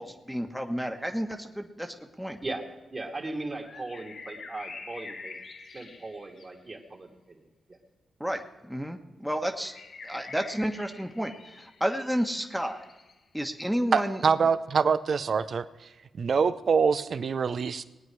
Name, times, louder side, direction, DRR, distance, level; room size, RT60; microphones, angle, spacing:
voice 1, 0.0-2.4 8.2-9.7 10.0-12.8 13.3-14.2, equal, ahead, 4 dB, 1.3 m, -31 dB
voice 2, 2.9-5.4 5.7-7.4 7.7-7.8, right 2 dB, 40° right, 1 dB, 2.4 m, -38 dB
sound 1, 3.6-6.5 9.6-13.1, left 4 dB, 60° left, 1.3 m, -46 dB
voice 3, 13.9-15.7 16.2-17.8, right 5 dB, 60° right, 14 dB, 0.6 m, -25 dB
20.0 x 9.1 x 4.8 m, 1.1 s
supercardioid pair, 50°, 0 cm